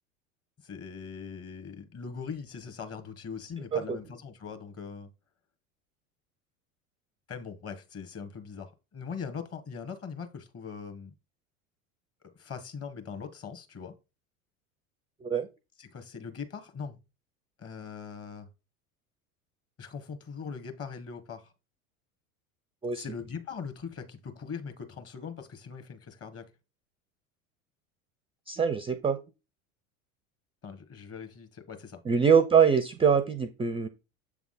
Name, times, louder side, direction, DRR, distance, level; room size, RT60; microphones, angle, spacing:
voice 1, 0.6-5.1 7.3-11.1 12.3-13.9 15.8-17.0 17.6-18.5 19.8-21.5 22.9-26.5 30.6-32.0, left 6 dB, 35° left, 1.2 m, -41 dB
voice 2, 28.5-29.2 32.1-33.9, right 6 dB, 15° right, 0.4 m, -23 dB
7.1 x 3.5 x 4.0 m
hypercardioid pair, 75°, 42 cm